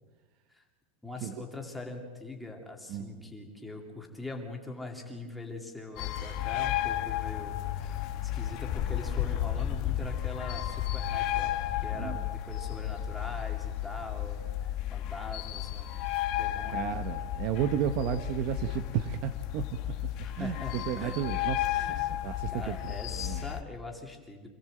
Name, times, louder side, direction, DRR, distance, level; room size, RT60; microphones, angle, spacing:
voice 1, 1.0-15.9 16.4-17.0 20.2-21.3 21.7-22.1 22.5-24.5, left 2 dB, 5° left, 0 dB, 2.4 m, -42 dB
sound 1, 6.0-23.6, left 12 dB, 35° left, 1.3 m, -33 dB
voice 2, 16.7-19.7 20.4-22.8 23.2-23.4, right 9 dB, 40° right, 9 dB, 0.9 m, -33 dB
26.5 x 16.5 x 7.7 m, 1.4 s
supercardioid pair, 180°, 0 cm